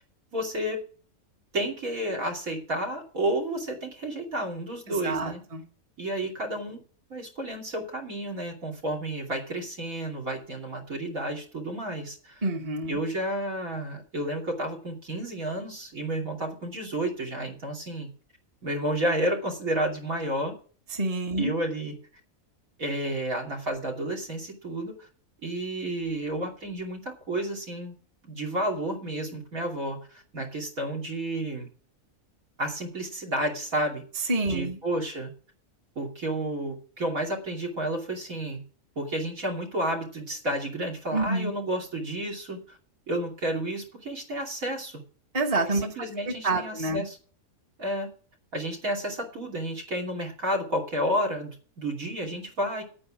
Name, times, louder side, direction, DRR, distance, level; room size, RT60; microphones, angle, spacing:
voice 1, 0.3-0.8 1.5-5.4 6.0-6.8 7.1-12.4 12.9-18.1 18.6-20.6 21.4-21.9 22.8-25.1 25.4-27.9 28.3-31.7 32.6-35.3 36.0-38.6 39.0-42.8 43.1-45.0 45.7-47.2 47.8-48.1 48.5-52.8, right 1 dB, 70° right, 3 dB, 3.2 m, -31 dB
voice 2, 5.0-5.6 12.4-13.0 20.9-21.5 34.3-34.8 41.1-41.5 45.3-45.9 46.2-47.0, right 2 dB, 25° right, 3 dB, 1.4 m, -27 dB
9.5 x 8.8 x 6.2 m, 0.41 s
omnidirectional pair, 1.5 m